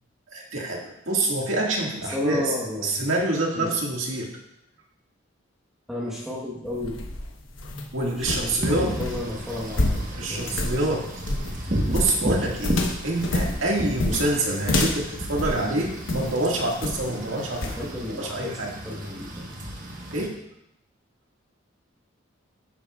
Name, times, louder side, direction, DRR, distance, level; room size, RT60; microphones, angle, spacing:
voice 1, 0.3-2.5 2.8-4.3 7.9-8.9 10.2-11.1 11.9-17.9 18.2-18.7 20.1-20.4, right 2 dB, 75° right, -2 dB, 2.0 m, -26 dB
voice 2, 2.1-3.1 3.5-3.7 5.9-7.1 8.2-10.8 17.6-19.4, left 1 dB, ahead, -5 dB, 1.3 m, -33 dB
sound 1, 6.7-16.4 16.8-17.2 17.6-17.8, left 1 dB, 75° left, 1.1 m, -28 dB
Wind / Rain, 8.6-20.3, right 1 dB, 40° right, 1.3 m, -33 dB
11.0 x 9.2 x 2.4 m, 0.82 s
head